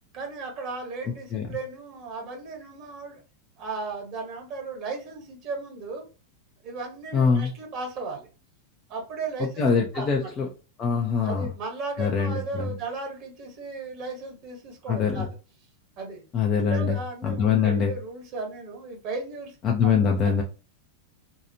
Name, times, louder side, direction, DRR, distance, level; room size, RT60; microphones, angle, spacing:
voice 1, 0.1-3.2 3.6-6.0 6.6-8.3 8.9-10.3 11.2-15.4 16.0-16.2 16.7-19.5 19.8-20.3, right 3 dB, 40° right, 1.2 m, -36 dB
voice 2, 7.1-7.5 9.6-10.5 10.8-11.4 12.0-12.7 14.9-15.3 16.3-17.0 17.2-17.9 19.6-20.4, left 6 dB, 30° left, 0.5 m, -23 dB
2.8 x 2.4 x 2.7 m
figure-of-eight pair, 90°, 0 cm